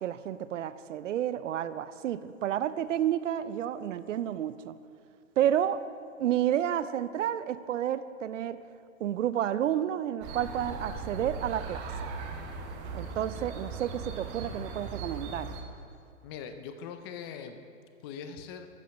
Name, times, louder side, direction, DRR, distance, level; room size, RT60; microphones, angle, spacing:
voice 1, 0.0-4.8 5.4-5.8 6.2-8.6 9.0-12.1 12.9-15.5, right 10 dB, 70° right, 15 dB, 0.6 m, -30 dB
sound 1, 10.2-15.6, right 4 dB, 25° right, 1.2 m, -39 dB
voice 2, 16.2-17.6 18.0-18.7, left 7 dB, 20° left, 8 dB, 0.4 m, -41 dB
13.5 x 5.6 x 6.3 m, 2.4 s
hypercardioid pair, 135°, 39 cm